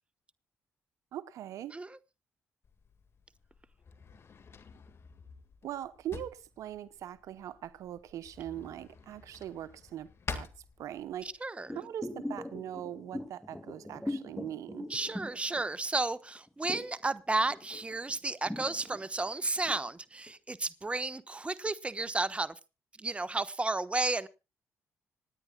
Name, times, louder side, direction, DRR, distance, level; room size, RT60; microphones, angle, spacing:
voice 1, 1.1-1.8 5.6-10.5 10.8-11.3 11.7-14.9, right 11 dB, 75° right, 0.9 m, -41 dB
Drawer open or close, 2.6-11.4, left 5 dB, 50° left, 1.8 m, -48 dB
voice 2, 11.2-11.8 14.9-22.5 23.0-24.3, right 2 dB, 20° right, 1.1 m, -33 dB
sound 1, 11.7-16.1 16.4-19.9 20.3-20.4, left 1 dB, 5° left, 2.5 m, -41 dB
26.5 x 9.9 x 2.3 m
supercardioid pair, 65°, 5 cm